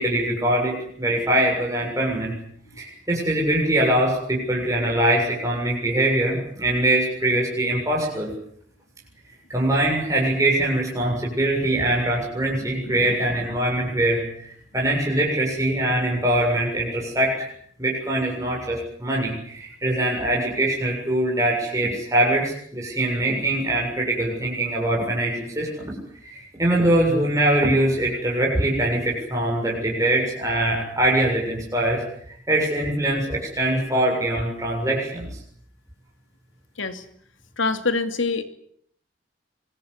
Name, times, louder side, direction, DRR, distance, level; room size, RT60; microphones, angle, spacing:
voice 1, 0.0-2.3 2.8-8.3 9.5-17.5 17.8-25.9 26.2-32.0 32.5-35.3, right 1 dB, 15° right, -2 dB, 7.2 m, -23 dB
voice 2, 12.5-12.9 36.8-37.0 37.6-38.4, left 4 dB, 90° left, 9 dB, 2.8 m, -26 dB
26.0 x 22.5 x 8.3 m, 0.65 s
head